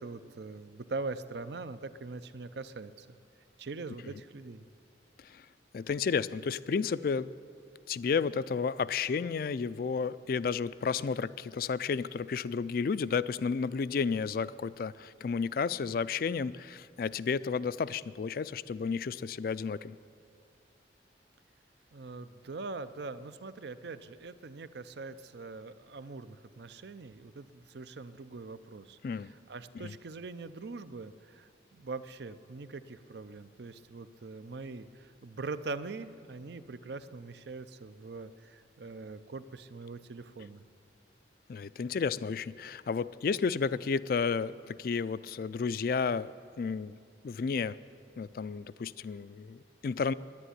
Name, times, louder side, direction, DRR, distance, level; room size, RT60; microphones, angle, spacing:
voice 1, 0.0-3.1 3.6-4.6 21.9-40.6, right 3 dB, 65° right, 13 dB, 0.5 m, -42 dB
voice 2, 5.7-7.3 7.9-20.0 29.0-29.3 29.7-30.0 41.5-46.9 47.2-47.8 48.2-50.1, left 5 dB, 50° left, 17 dB, 0.3 m, -32 dB
10.5 x 10.0 x 9.9 m, 2.5 s
head